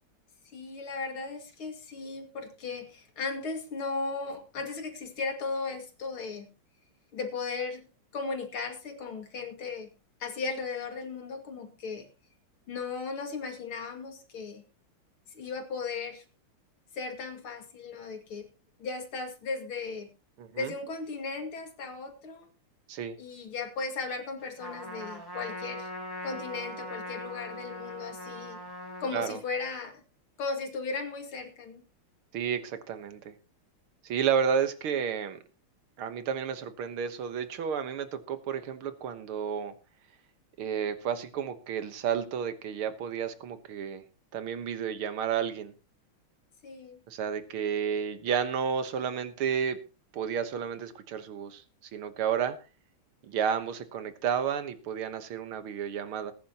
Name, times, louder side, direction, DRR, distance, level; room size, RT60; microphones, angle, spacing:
voice 1, 0.5-6.5 7.1-7.8 8.1-9.9 10.2-12.1 12.7-14.6 15.3-16.2 16.9-18.5 18.8-20.1 20.6-22.5 23.2-25.9 26.2-28.6 29.0-30.0 30.4-31.8 46.6-47.0, left 4 dB, 75° left, 4 dB, 3.1 m, -36 dB
voice 2, 20.4-20.7 22.9-23.2 29.1-29.4 32.3-33.3 34.0-35.4 36.0-39.7 40.6-44.0 44.3-45.7 47.1-49.8 50.1-51.6 51.9-52.6 53.2-56.3, right 7 dB, 75° right, 10 dB, 2.1 m, -31 dB
Trumpet, 24.6-29.3, equal, 10° left, 3.8 m, -40 dB
20.0 x 10.0 x 2.9 m, 0.31 s
omnidirectional pair, 2.4 m